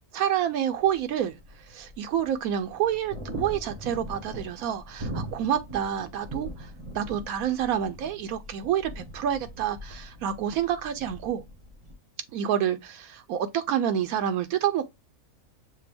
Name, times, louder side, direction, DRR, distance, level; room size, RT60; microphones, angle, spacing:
voice 1, 0.1-1.3 1.7-6.5 6.9-11.4 12.3-14.8, right 10 dB, 80° right, 1.0 m, -28 dB
sound 1, 0.7-11.9, equal, 30° right, 0.7 m, -41 dB
6.5 x 2.2 x 3.4 m
omnidirectional pair, 1.5 m